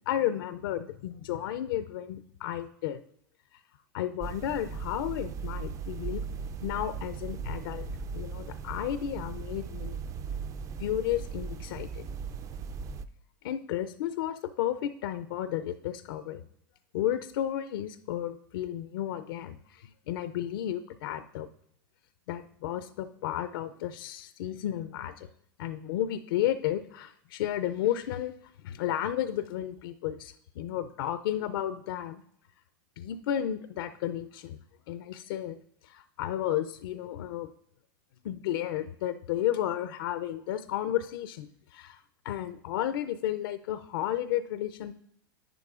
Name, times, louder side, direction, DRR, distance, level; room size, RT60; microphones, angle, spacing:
voice 1, 0.1-3.0 3.9-6.2 6.6-7.9 8.1-9.9 10.8-12.0 13.4-16.4 16.9-21.5 22.3-25.3 25.6-28.3 28.6-32.2 33.0-34.6 34.9-35.6 35.8-37.5 38.2-44.9, left 11 dB, 70° left, 11 dB, 0.5 m, -33 dB
sound 1, 4.2-13.0, right 5 dB, 25° right, 0.4 m, -38 dB
10.5 x 9.4 x 2.4 m, 0.69 s
supercardioid pair, 130°, 12 cm